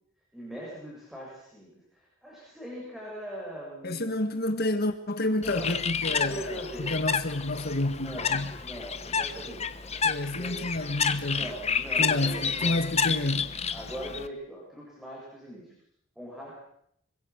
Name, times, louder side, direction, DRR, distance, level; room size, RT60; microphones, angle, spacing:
voice 1, 0.3-4.2 5.2-5.7 6.0-6.9 8.0-10.0 10.4-10.5 11.2-12.8 13.7-15.7 16.2-16.5, equal, ahead, 8.0 m, -41 dB
voice 2, 3.8-8.5 10.0-11.5 12.0-13.6, left 1 dB, 50° left, 1.7 m, -29 dB
Bird, 5.4-14.3, left 6 dB, 30° left, 1.4 m, -30 dB
26.5 x 25.0 x 6.4 m
head